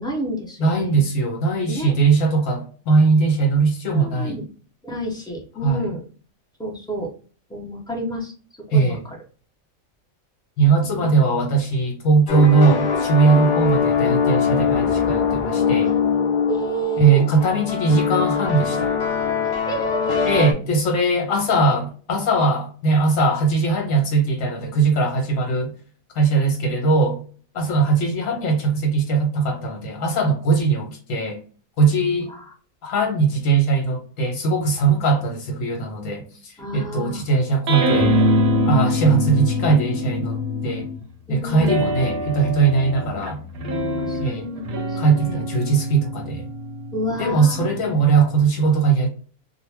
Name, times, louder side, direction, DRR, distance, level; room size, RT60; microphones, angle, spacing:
voice 1, 0.0-0.9 1.7-1.9 3.9-4.5 4.8-6.0 6.6-7.1 7.5-8.3 8.7-9.0 10.8-11.1 13.3-13.4 16.5-17.2 19.4-20.5 32.3-32.4 36.6-37.3 41.3-41.9 44.0-45.4 46.9-47.7, right 1 dB, 5° left, 0.4 m, -29 dB
voice 2, 0.6-4.4 5.6-5.9 8.7-9.0 10.6-15.9 17.0-18.9 20.2-25.7 26.1-27.2 27.5-31.4 31.8-32.3 32.8-38.1 38.6-40.9 41.3-43.4 44.2-44.5 45.0-46.5 47.2-49.1, right 4 dB, 70° left, 1.3 m, -20 dB
sound 1, 12.3-20.5, left 6 dB, 90° left, 0.4 m, -22 dB
sound 2, 37.7-41.0 41.6-48.4, left 1 dB, 60° right, 0.7 m, -24 dB
2.4 x 2.1 x 3.2 m
omnidirectional pair, 1.4 m